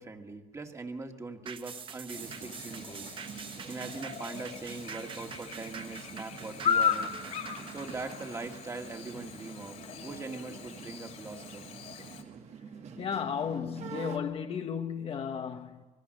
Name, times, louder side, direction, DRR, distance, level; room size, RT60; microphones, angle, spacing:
voice 1, 0.0-3.1 3.7-7.1 7.7-11.7, right 3 dB, 20° right, 2.0 m, -41 dB
sound 1, 1.5-10.2 10.6-10.7, right 7 dB, 40° right, 1.0 m, -46 dB
Chirp tweet / Buzz, 2.1-12.2, left 7 dB, 65° left, 3.1 m, -36 dB
sound 2, 2.2-14.2, right 7 dB, 55° right, 1.7 m, -47 dB
voice 2, 13.0-15.8, left 7 dB, 45° left, 1.3 m, -34 dB
25.5 x 22.0 x 6.5 m
cardioid pair, 145°, 13 cm